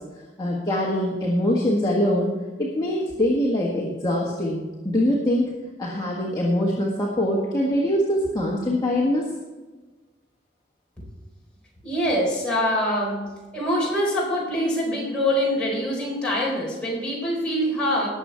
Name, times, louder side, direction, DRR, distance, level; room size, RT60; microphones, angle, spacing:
voice 1, 0.4-2.3 2.6-5.5 5.8-9.3, left 1 dB, 20° left, -4 dB, 1.5 m, -23 dB
voice 2, 11.8-13.2 13.5-18.1, equal, 5° left, -5 dB, 4.2 m, -24 dB
19.0 x 7.2 x 4.5 m, 1.2 s
head